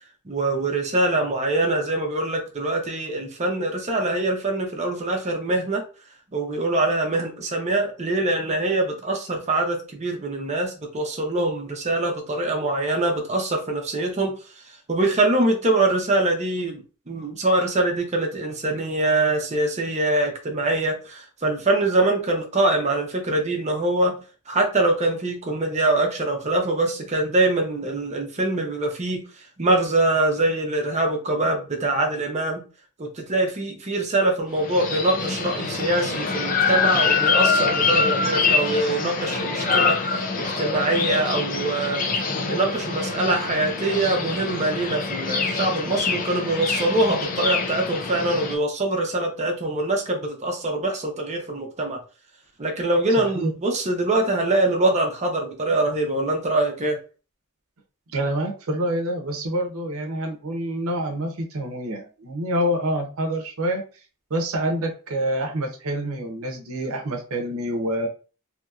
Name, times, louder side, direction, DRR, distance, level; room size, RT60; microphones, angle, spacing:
voice 1, 0.2-5.8 6.3-24.2 24.5-32.6 33.0-40.0 40.6-42.0 42.5-52.0 52.6-57.0, right 2 dB, 30° right, 2 dB, 0.7 m, -24 dB
sound 1, 34.6-48.5, left 4 dB, 40° left, 0.5 m, -25 dB
voice 2, 53.2-53.5 58.1-63.8 64.3-68.1, right 1 dB, 70° right, 3 dB, 0.7 m, -27 dB
2.8 x 2.7 x 2.3 m, 0.35 s
head